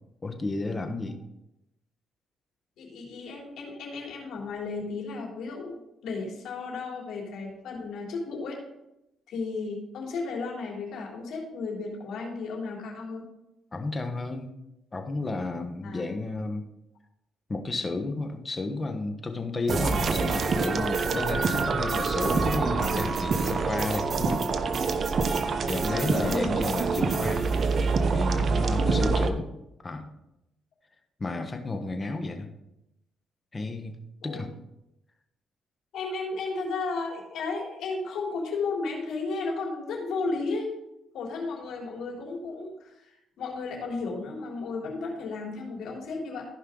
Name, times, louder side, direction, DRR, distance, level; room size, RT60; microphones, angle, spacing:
voice 1, 0.2-1.2 13.7-14.5 14.9-16.6 17.5-24.5 25.7-27.5 28.1-29.5 29.8-30.1 31.2-32.5 33.5-33.9 34.2-34.5, left 2 dB, 30° left, 6 dB, 1.3 m, -32 dB
voice 2, 2.8-5.8 6.0-8.6 9.3-13.2 15.8-16.0 25.9-26.6 28.8-29.2 34.2-34.5 35.9-40.7 41.1-46.5, left 3 dB, 80° left, -2 dB, 3.4 m, -34 dB
sound 1, 19.7-29.3, right 4 dB, 50° right, 0.9 m, -26 dB
14.5 x 5.5 x 3.9 m, 0.87 s
cardioid pair, 90°, 0 cm